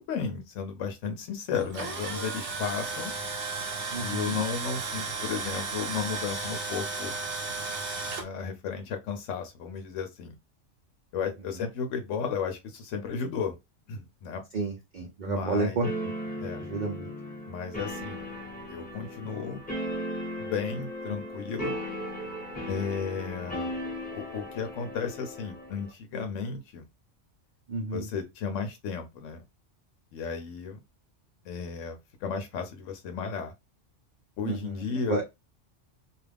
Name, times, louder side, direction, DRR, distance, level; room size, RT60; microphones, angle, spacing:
voice 1, 0.0-3.1 4.0-7.1 8.2-10.4 11.1-13.6 13.9-14.4 15.3-15.9 16.4-16.6 17.5-18.3 18.7-19.6 20.4-21.8 22.7-23.7 24.1-26.9 27.9-29.4 30.1-30.8 31.4-33.5 34.4-35.2, left 6 dB, 85° left, 1.0 m, -34 dB
Tools, 1.5-8.2, right 4 dB, 70° right, 1.1 m, -34 dB
voice 2, 3.9-4.4 14.5-16.1 16.6-17.1 27.7-28.1 34.4-34.8 35.1-35.2, right 3 dB, 50° right, 0.6 m, -31 dB
sound 1, 15.8-25.9, equal, 10° left, 0.9 m, -37 dB
2.4 x 2.3 x 3.3 m
omnidirectional pair, 1.2 m